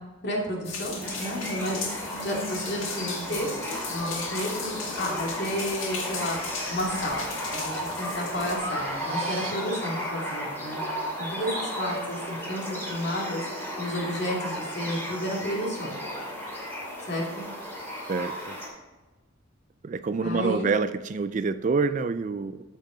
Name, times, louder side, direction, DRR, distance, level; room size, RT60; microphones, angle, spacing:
voice 1, 0.2-6.4 6.7-10.8 11.2-13.4 13.8-16.0 17.1-17.5 20.2-20.7, equal, 50° left, -2 dB, 2.5 m, -32 dB
sound 1, 0.6-8.5, left 4 dB, 70° left, 2.1 m, -36 dB
sound 2, 1.0-18.7, equal, 10° left, 2.8 m, -34 dB
Breathing, 6.7-7.2 7.7-9.9, right 3 dB, 80° right, 1.5 m, -40 dB
voice 2, 18.1-18.6 19.8-22.6, right 4 dB, 35° right, 13 dB, 0.3 m, -27 dB
12.5 x 7.4 x 3.9 m, 1.2 s
head